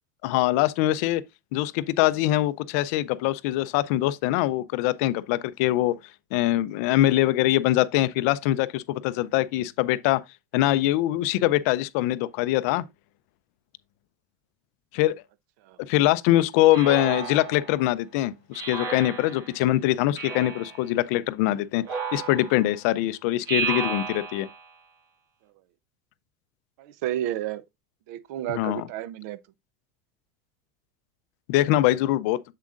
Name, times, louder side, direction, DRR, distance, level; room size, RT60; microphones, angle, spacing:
voice 1, 0.2-1.2 1.5-6.0 6.3-10.2 10.5-12.8 14.9-15.2 15.9-21.8 22.1-24.5 28.5-28.8 31.5-32.4, left 15 dB, 55° left, 0.4 m, -23 dB
Speech synthesizer, 16.7-17.8 18.5-19.6 20.2-20.8 21.8-22.8 23.5-24.6, right 5 dB, 35° right, 1.4 m, -32 dB
voice 2, 26.8-27.6 28.1-29.4, right 12 dB, 60° right, 0.6 m, -31 dB
7.5 x 7.3 x 2.4 m
cardioid pair, 180°, 10 cm